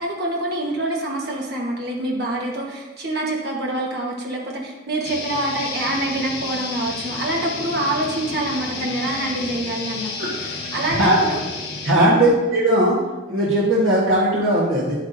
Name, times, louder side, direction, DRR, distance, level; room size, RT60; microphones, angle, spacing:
voice 1, 0.0-11.4 11.9-12.3, right 1 dB, 55° right, -2 dB, 1.2 m, -26 dB
sound 1, 5.0-11.9, left 4 dB, 55° left, 1.3 m, -31 dB
voice 2, 11.8-13.0 13.3-14.9, right 1 dB, 75° right, -6 dB, 1.3 m, -18 dB
9.5 x 8.1 x 2.6 m, 1.1 s
head